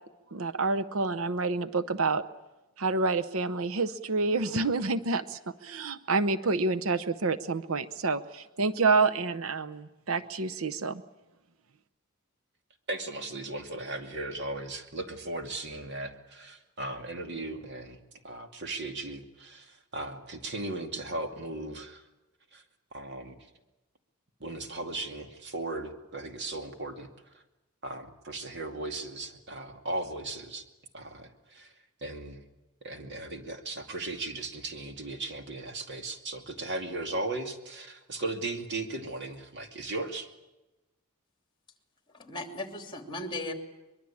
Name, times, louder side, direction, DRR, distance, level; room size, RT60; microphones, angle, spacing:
voice 1, 0.3-2.3 2.8-11.0, right 3 dB, 70° right, 14 dB, 0.8 m, -28 dB
voice 2, 12.9-18.0 18.2-22.0 22.5-22.6 22.9-23.3 24.4-27.1 27.8-30.6 30.9-31.7 32.0-32.4 32.8-40.3, right 2 dB, 50° right, 6 dB, 2.5 m, -37 dB
voice 3, 42.1-43.5, left 2 dB, 20° left, 6 dB, 3.0 m, -37 dB
23.5 x 22.5 x 8.6 m, 1.0 s
head